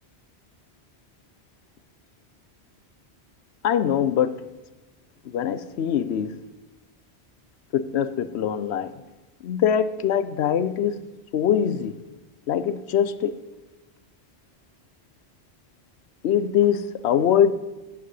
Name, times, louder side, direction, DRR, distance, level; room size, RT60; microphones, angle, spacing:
voice 1, 3.6-4.4 5.3-6.4 7.7-8.9 9.4-11.0 11.3-12.0 12.5-13.4 16.2-17.5, left 9 dB, 80° left, 14 dB, 0.9 m, -23 dB
10.5 x 6.6 x 7.6 m, 1.1 s
omnidirectional pair, 1.1 m